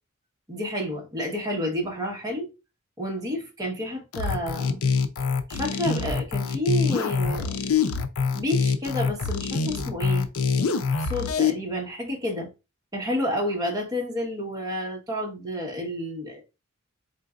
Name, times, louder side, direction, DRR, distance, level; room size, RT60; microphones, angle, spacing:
voice 1, 0.5-2.5 3.0-4.8 5.5-7.6 8.3-10.3 11.0-12.5 12.9-16.4, equal, 20° right, 1.2 m, -30 dB
sound 1, 4.1-11.5, left 5 dB, 75° left, 0.5 m, -25 dB
3.8 x 3.7 x 2.4 m
head